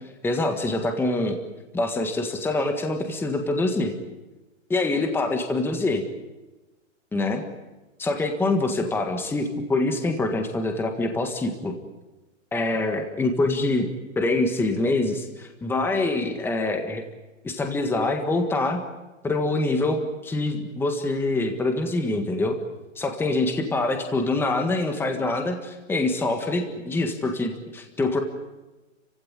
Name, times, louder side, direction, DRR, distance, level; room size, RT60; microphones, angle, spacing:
voice 1, 0.2-1.4 1.7-3.9 4.7-6.0 7.1-7.4 8.0-11.8 12.5-13.9 14.1-17.0 17.4-18.8 19.2-22.6 23.0-28.2, left 2 dB, 5° left, 5 dB, 1.6 m, -25 dB
30.0 x 16.5 x 9.7 m, 1.1 s
hypercardioid pair, 160°, 39 cm